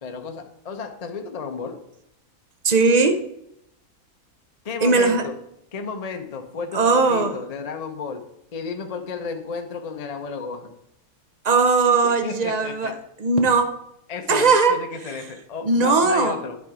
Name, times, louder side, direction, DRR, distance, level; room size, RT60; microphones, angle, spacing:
voice 1, 0.0-1.8 4.6-5.3 5.7-10.8 12.0-12.9 14.1-16.6, left 5 dB, 40° left, 5 dB, 0.6 m, -33 dB
voice 2, 2.6-3.2 4.8-5.3 6.7-7.3 11.4-12.9 13.2-13.7 14.3-14.8 15.0-15.2 15.6-16.4, right 4 dB, 45° right, 6 dB, 0.5 m, -19 dB
10.5 x 4.5 x 4.8 m, 0.78 s
omnidirectional pair, 1.6 m